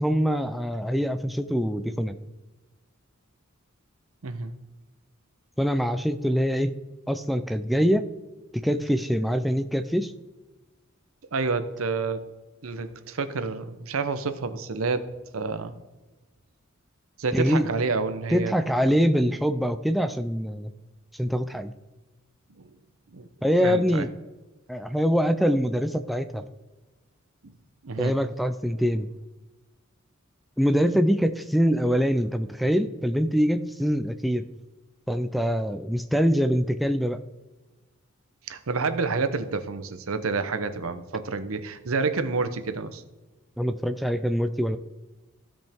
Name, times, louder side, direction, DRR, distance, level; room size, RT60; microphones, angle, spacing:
voice 1, 0.0-2.2 5.6-6.7 7.1-8.0 8.5-10.1 17.3-17.7 18.3-20.7 21.1-21.7 23.4-24.1 24.7-26.4 28.0-29.1 30.6-34.4 35.1-37.2 43.6-44.8, equal, ahead, 8 dB, 0.3 m, -24 dB
voice 2, 11.3-12.2 12.6-15.7 17.2-18.5 18.9-19.0 22.5-22.7 23.1-23.3 23.6-24.1 27.4-27.5 27.8-28.2 38.5-43.0, right 4 dB, 75° right, 11 dB, 0.8 m, -29 dB
15.5 x 5.3 x 3.5 m, 1.1 s
head